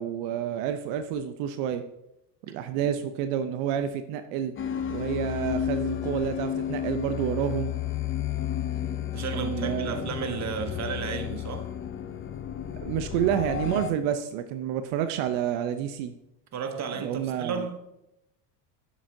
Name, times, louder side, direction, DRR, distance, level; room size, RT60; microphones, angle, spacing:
voice 1, 0.0-1.8 2.5-4.5 4.9-7.7 9.3-9.9 12.8-16.1 17.0-17.7, right 9 dB, 70° right, 0.7 m, -29 dB
sound 1, 4.6-13.9, left 10 dB, 25° left, 0.6 m, -32 dB
voice 2, 9.1-11.7 16.5-17.9, right 6 dB, 35° right, 1.0 m, -33 dB
7.6 x 7.0 x 2.7 m
supercardioid pair, 95°, 49 cm